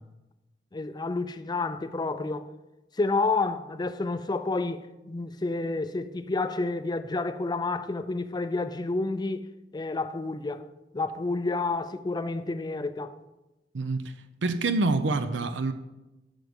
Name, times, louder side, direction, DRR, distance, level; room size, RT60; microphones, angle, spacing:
voice 1, 0.7-2.5 3.0-9.5 9.7-10.7 10.9-13.1, left 3 dB, 25° left, 0.4 m, -29 dB
voice 2, 13.7-14.1 14.4-15.7, right 3 dB, 90° right, 0.7 m, -26 dB
9.1 x 6.5 x 5.3 m
head